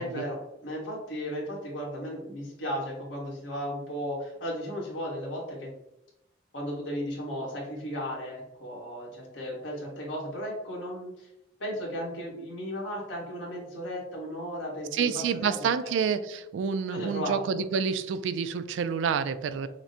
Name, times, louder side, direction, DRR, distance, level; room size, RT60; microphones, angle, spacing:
voice 1, 0.0-5.7 6.5-11.3 11.6-15.6 15.8-15.9 16.9-17.6 19.6-19.7, equal, 90° left, -3 dB, 1.4 m, -35 dB
voice 2, 14.9-19.7, right 6 dB, 75° right, 12 dB, 0.3 m, -28 dB
5.8 x 2.1 x 2.7 m, 0.88 s
head